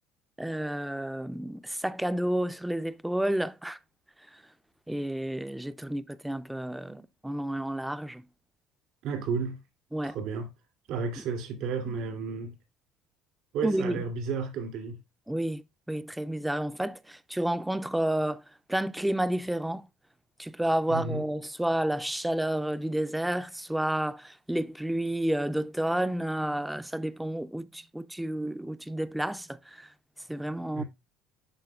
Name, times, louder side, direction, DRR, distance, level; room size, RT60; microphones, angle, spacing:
voice 1, 0.4-3.8 4.3-4.4 4.9-8.3 9.9-10.2 13.6-14.0 15.3-18.4 18.7-19.9 20.4-29.9 30.3-30.8, right 1 dB, 5° right, 0.3 m, -30 dB
voice 2, 9.0-9.6 10.0-10.5 10.9-12.5 13.5-15.0 20.9-21.2 30.7-30.8, right 5 dB, 70° right, 2.5 m, -32 dB
11.0 x 4.1 x 2.3 m
supercardioid pair, 95°, 0 cm